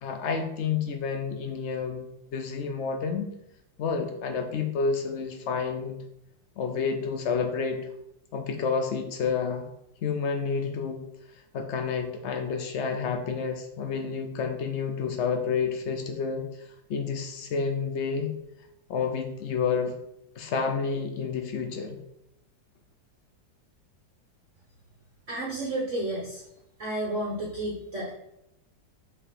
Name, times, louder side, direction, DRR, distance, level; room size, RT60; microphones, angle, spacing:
voice 1, 0.0-3.3 3.8-6.0 6.6-7.8 8.3-9.7 10.0-11.0 11.5-18.3 18.9-19.9 20.4-22.0, left 5 dB, 80° left, 5 dB, 0.6 m, -29 dB
voice 2, 25.3-26.4 26.8-28.1, right 1 dB, 45° right, -3 dB, 1.3 m, -31 dB
5.5 x 4.0 x 5.6 m, 0.82 s
omnidirectional pair, 2.0 m